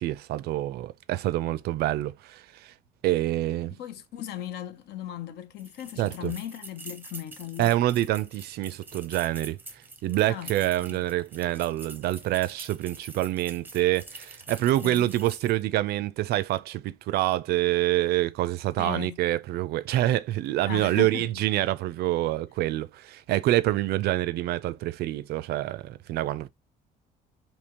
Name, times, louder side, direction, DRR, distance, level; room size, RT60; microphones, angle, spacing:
voice 1, 0.0-2.7 3.0-3.8 6.0-6.3 7.6-9.6 10.0-26.5, right 15 dB, 70° right, 0.4 m, -26 dB
voice 2, 3.7-7.8 10.3-10.6 10.9-11.0 14.6-15.1 18.8-19.2 20.7-21.3, left 11 dB, 75° left, 0.6 m, -37 dB
sound 1, 5.6-15.7, right 2 dB, 10° right, 0.6 m, -46 dB
3.6 x 2.7 x 2.9 m
cardioid pair, 110°, 17 cm